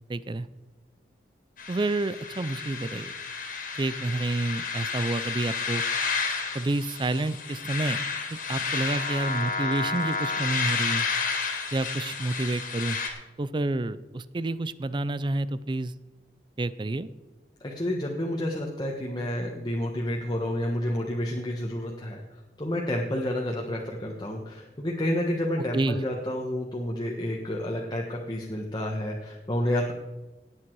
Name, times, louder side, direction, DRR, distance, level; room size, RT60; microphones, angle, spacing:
voice 1, 0.1-0.5 1.7-3.1 3.8-5.8 6.5-8.0 8.5-11.1 11.7-13.0 13.4-15.9 16.6-17.1 25.7-26.0, right 2 dB, 25° right, 16 dB, 0.4 m, -29 dB
sound 1, 1.6-13.1, left 5 dB, 50° left, 2.4 m, -31 dB
voice 2, 17.6-22.2 22.6-29.9, left 1 dB, 25° left, -1 dB, 1.4 m, -30 dB
18.0 x 8.6 x 4.7 m, 1.1 s
head